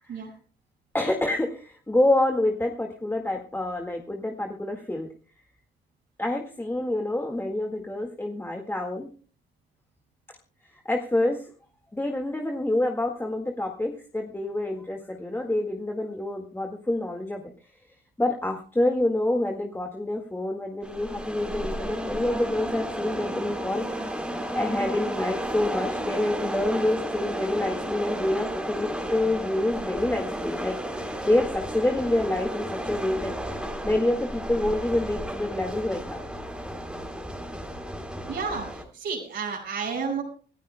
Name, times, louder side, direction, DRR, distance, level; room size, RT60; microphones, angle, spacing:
voice 1, 0.9-5.1 6.2-9.1 10.7-11.5 11.9-17.4 18.2-24.2 24.5-36.2, left 1 dB, 10° left, 2 dB, 1.8 m, -27 dB
sound 1, 20.8-38.8, equal, 5° right, 3.3 m, -33 dB
voice 2, 38.3-40.2, right 5 dB, 70° right, -2 dB, 5.8 m, -31 dB
25.5 x 14.0 x 2.2 m, 0.42 s
cardioid pair, 90°, 20 cm